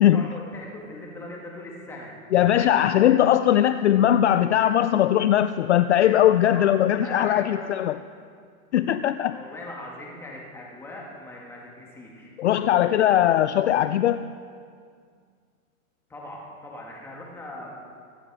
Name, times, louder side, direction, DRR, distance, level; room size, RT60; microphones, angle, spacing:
voice 1, 0.1-2.1 6.5-6.6 7.0-7.7 9.3-12.5 16.1-17.7, left 2 dB, 5° left, -2 dB, 1.8 m, -40 dB
voice 2, 2.3-8.0 8.7-9.4 12.4-14.3, left 11 dB, 55° left, 12 dB, 0.4 m, -20 dB
23.5 x 8.9 x 4.8 m, 2.2 s
hypercardioid pair, 160°, 43 cm